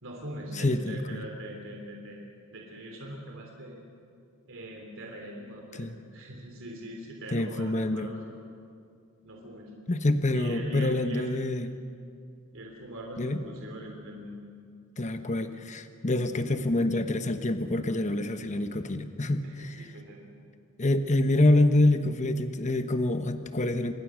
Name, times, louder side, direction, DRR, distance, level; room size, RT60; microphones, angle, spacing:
voice 1, 0.0-3.8 4.4-8.3 9.2-9.7 10.3-11.3 12.5-14.4 19.4-20.2, right 1 dB, 65° right, 0 dB, 3.5 m, -42 dB
voice 2, 0.6-1.2 5.8-6.0 7.3-8.1 9.9-11.7 13.2-13.4 15.0-19.9 20.8-23.9, left 1 dB, 35° left, 9 dB, 1.1 m, -26 dB
27.0 x 21.5 x 6.4 m, 2.3 s
head